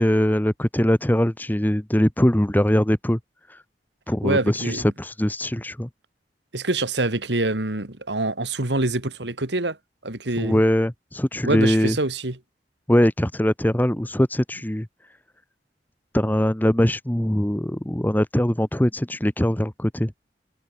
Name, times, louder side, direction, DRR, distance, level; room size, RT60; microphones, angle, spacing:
voice 1, 0.0-3.2 3.5-3.6 4.1-5.9 10.4-12.0 12.9-14.9 16.1-20.1, equal, 10° left, 1.0 m, -21 dB
voice 2, 4.2-4.8 6.5-9.8 10.0-10.6 11.4-12.4, right 2 dB, 80° right, 2.7 m, -25 dB
head